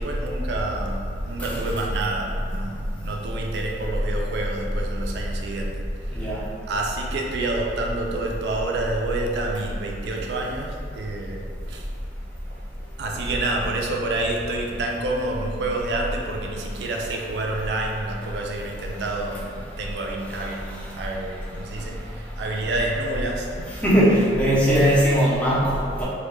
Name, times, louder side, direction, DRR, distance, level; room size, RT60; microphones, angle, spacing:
voice 1, 0.0-11.9 12.5-12.6 13.0-24.1, right 2 dB, 65° right, 0 dB, 0.3 m, -29 dB
voice 2, 6.1-6.4 23.8-26.1, equal, 5° left, -7 dB, 0.4 m, -19 dB
2.1 x 2.1 x 3.1 m, 2.2 s
head